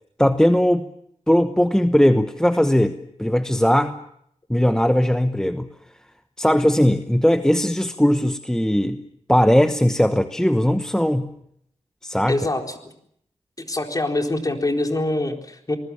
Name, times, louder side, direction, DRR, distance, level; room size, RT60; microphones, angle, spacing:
voice 1, 0.2-0.9 1.3-4.0 4.5-5.7 6.4-9.0 9.3-11.3 12.0-12.4, equal, 5° left, 9 dB, 1.0 m, -19 dB
voice 2, 12.3-12.7 13.6-15.8, left 2 dB, 30° left, 4 dB, 4.0 m, -24 dB
27.5 x 20.0 x 7.3 m, 0.72 s
cardioid pair, 70°, 12 cm